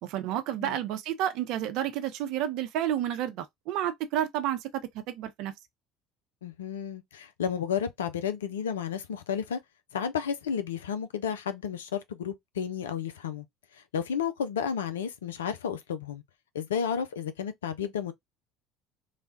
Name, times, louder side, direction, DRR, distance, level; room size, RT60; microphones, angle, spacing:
voice 1, 0.0-4.7 5.1-5.5, right 11 dB, 60° right, 0.6 m, -30 dB
voice 2, 6.4-9.6 9.9-13.4 13.9-16.2 16.5-18.1, left 7 dB, 80° left, 0.4 m, -32 dB
3.2 x 2.3 x 2.5 m
hypercardioid pair, 65°, 0 cm